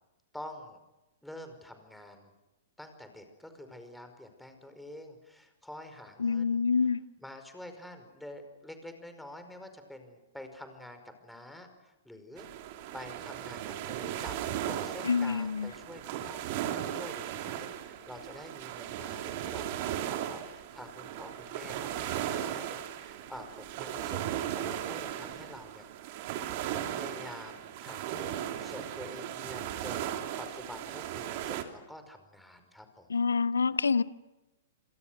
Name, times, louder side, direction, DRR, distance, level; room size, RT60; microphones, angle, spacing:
voice 1, 0.3-0.8 1.2-2.3 2.8-6.6 7.2-12.5 12.9-14.4 14.6-26.4 26.7-33.2, left 1 dB, 5° left, 5.2 m, -48 dB
voice 2, 6.2-7.0 15.0-15.7 33.1-34.0, left 5 dB, 75° left, 1.1 m, -27 dB
sound 1, 12.4-31.6, right 11 dB, 45° right, 3.2 m, -37 dB
29.0 x 27.5 x 6.4 m
figure-of-eight pair, 105°, 0 cm